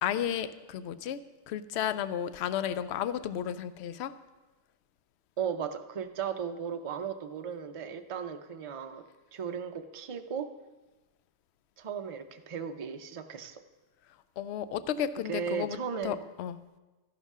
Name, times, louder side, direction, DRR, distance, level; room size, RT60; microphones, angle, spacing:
voice 1, 0.0-1.2 1.5-4.1 14.4-15.8 16.0-16.6, left 9 dB, 70° left, 13 dB, 0.8 m, -33 dB
voice 2, 5.4-9.0 9.3-10.5 11.8-13.6 15.3-16.3, right 7 dB, 40° right, 7 dB, 0.5 m, -36 dB
13.0 x 11.0 x 3.6 m, 1.2 s
omnidirectional pair, 1.2 m